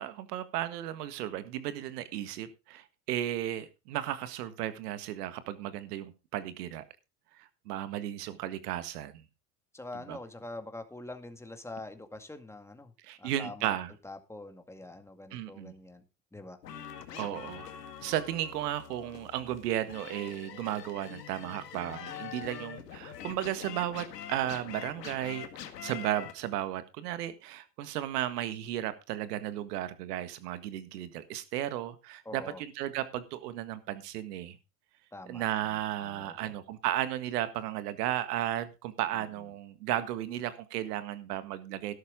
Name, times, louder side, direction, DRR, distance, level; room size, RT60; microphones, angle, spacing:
voice 1, 0.0-6.8 7.3-9.2 9.9-10.2 13.0-13.9 15.3-15.7 17.2-17.7 18.0-25.5 25.8-34.6 35.2-41.9, right 12 dB, 75° right, 12 dB, 1.8 m, -34 dB
voice 2, 9.7-12.9 13.2-13.8 14.0-16.0 16.3-16.6 32.3-32.6 35.1-36.6 39.1-39.2, left 2 dB, 5° left, 7 dB, 2.1 m, -45 dB
sound 1, 16.6-26.3, left 9 dB, 85° left, 1.9 m, -44 dB
12.5 x 12.0 x 3.8 m, 0.28 s
hypercardioid pair, 85°, 47 cm